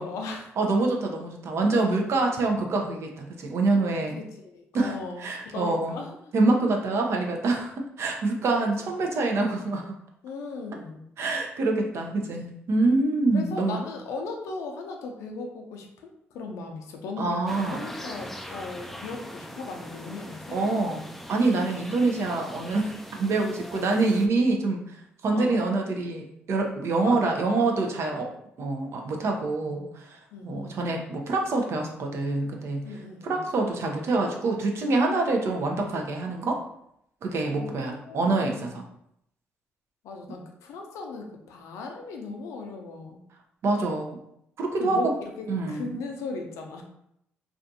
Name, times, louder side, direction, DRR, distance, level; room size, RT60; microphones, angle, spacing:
voice 1, 0.0-0.5 4.2-6.2 10.2-11.1 13.3-21.0 25.3-25.6 27.0-27.4 29.7-29.9 30.3-30.8 32.8-33.4 37.5-38.8 40.0-43.2 44.8-46.8, left 3 dB, 80° left, 3 dB, 0.4 m, -37 dB
voice 2, 0.6-4.2 4.7-6.0 6.3-9.9 11.2-13.8 17.2-17.9 20.5-21.0 21.3-22.9 23.2-28.3 28.6-32.8 33.2-36.6 37.2-38.8 43.6-44.2 44.6-45.1 45.5-46.0, right 3 dB, 60° right, 2 dB, 0.5 m, -26 dB
sound 1, 17.5-24.3, equal, 5° left, 0.3 m, -41 dB
2.5 x 2.3 x 2.6 m, 0.75 s
supercardioid pair, 60°, 5 cm